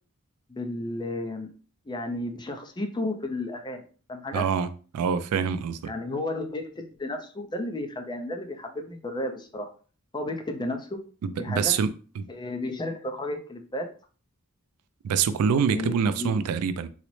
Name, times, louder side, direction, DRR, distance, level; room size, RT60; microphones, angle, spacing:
voice 1, 0.5-1.5 1.9-4.4 5.8-9.7 10.1-11.0 11.3-11.7 12.3-13.9 15.7-16.4, left 1 dB, 20° left, 0.5 m, -33 dB
voice 2, 4.3-4.7 4.9-5.9 11.2-11.9 12.2-12.3 15.0-16.9, right 6 dB, 90° right, 0.3 m, -25 dB
3.9 x 2.0 x 3.1 m
head